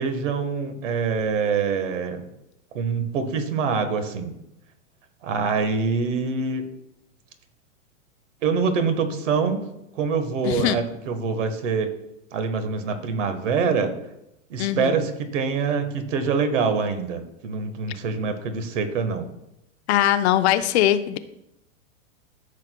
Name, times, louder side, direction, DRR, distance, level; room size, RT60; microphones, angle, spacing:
voice 1, 0.0-2.2 2.7-4.3 5.2-6.6 8.4-9.6 9.9-11.9 12.3-13.9 14.5-19.3, right 5 dB, 70° right, 8 dB, 1.4 m, -25 dB
voice 2, 10.4-10.8 14.6-14.9 19.9-21.2, left 12 dB, 60° left, 11 dB, 0.7 m, -21 dB
13.5 x 6.5 x 2.3 m, 0.85 s
hypercardioid pair, 140°, 38 cm